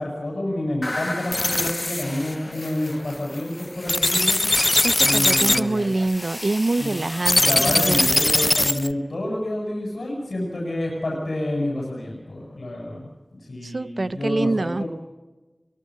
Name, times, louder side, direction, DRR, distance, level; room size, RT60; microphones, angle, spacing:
voice 1, 0.0-4.4 5.0-5.9 6.8-6.9 7.4-13.1 13.4-14.9, left 1 dB, 85° left, -2 dB, 7.5 m, -28 dB
sound 1, 0.8-8.9, left 1 dB, 35° left, 0.8 m, -22 dB
voice 2, 4.8-8.1 13.6-14.8, right 2 dB, 70° right, 16 dB, 0.7 m, -25 dB
24.5 x 23.5 x 6.5 m, 1.1 s
wide cardioid pair, 50°, 0 cm